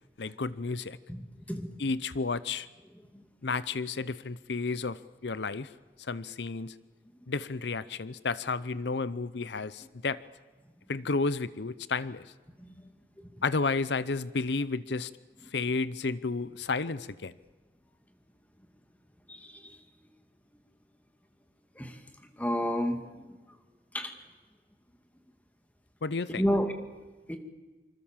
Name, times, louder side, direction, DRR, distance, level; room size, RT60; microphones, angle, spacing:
voice 1, 0.2-1.0 1.8-2.7 3.4-5.7 6.1-6.7 7.3-10.2 10.9-12.2 13.4-15.1 15.5-17.3 26.0-26.4, left 4 dB, 80° left, 17 dB, 0.7 m, -32 dB
voice 2, 19.3-19.8 21.8-22.0 22.4-23.2 23.9-24.1 26.4-26.7 27.3-27.4, equal, 10° left, 6 dB, 2.3 m, -30 dB
26.0 x 26.0 x 7.4 m, 1.3 s
head